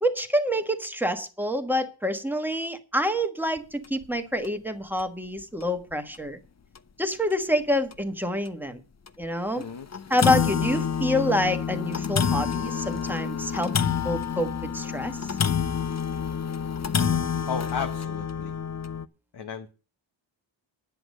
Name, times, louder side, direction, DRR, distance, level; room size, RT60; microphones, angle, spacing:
voice 1, 0.0-6.4 7.0-8.8 9.2-9.6 10.1-14.5 14.7-15.3, left 1 dB, 5° right, 1.4 m, -27 dB
sound 1, 3.8-4.0 4.4-4.5 5.0-5.1 6.1-6.2 6.8-6.9 7.3-7.4 7.9-8.0 9.1-9.2 9.6-9.7 9.9-19.1, left 7 dB, 35° left, 0.6 m, -28 dB
voice 2, 9.6-9.9 17.5-18.6 19.3-19.7, left 6 dB, 55° left, 1.1 m, -33 dB
10.5 x 7.9 x 6.4 m
wide cardioid pair, 125°, 47 cm